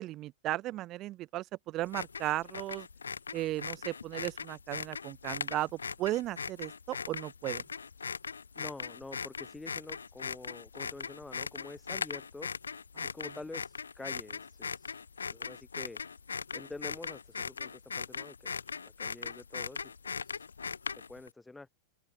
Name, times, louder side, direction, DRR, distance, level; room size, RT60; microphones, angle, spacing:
voice 1, 0.0-2.9 3.3-7.6 13.0-13.1, right 16 dB, 40° right, 0.9 m, -36 dB
sound 1, 1.8-21.3, left 5 dB, 85° left, 0.8 m, -40 dB
voice 2, 8.6-12.5 13.0-16.0 16.5-20.5 20.9-21.7, left 3 dB, 10° left, 1.1 m, -47 dB
hypercardioid pair, 100°, 0 cm